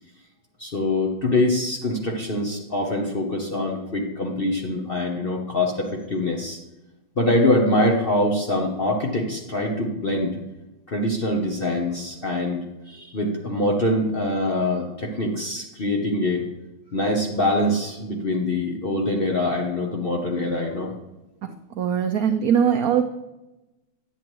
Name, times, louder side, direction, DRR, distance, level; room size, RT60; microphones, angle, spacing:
voice 1, 0.6-6.6 7.2-10.4 10.9-16.4 16.9-20.9, left 1 dB, 45° left, 0 dB, 0.7 m, -24 dB
voice 2, 21.8-23.0, right 8 dB, 80° right, 7 dB, 0.8 m, -20 dB
10.0 x 8.5 x 3.0 m, 1.0 s
omnidirectional pair, 2.2 m